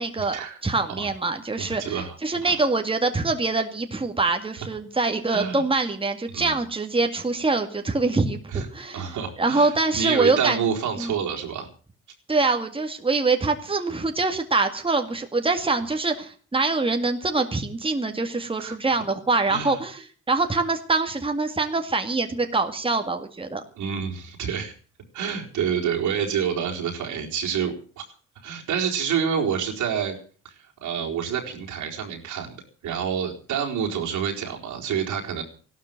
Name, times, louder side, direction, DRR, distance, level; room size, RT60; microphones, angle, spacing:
voice 1, 0.0-10.6 11.0-11.2 12.3-23.6, right 3 dB, 15° right, 5 dB, 2.1 m, -24 dB
voice 2, 1.6-2.2 2.4-2.6 5.3-5.6 6.3-6.5 8.5-8.7 8.9-11.7 18.6-18.7 19.5-19.8 23.8-24.7 25.1-28.0 28.4-30.2 30.4-30.5 30.8-32.5 32.8-35.4, right 7 dB, 80° right, 0 dB, 4.2 m, -28 dB
15.5 x 12.5 x 7.6 m, 0.42 s
cardioid pair, 90°, 30 cm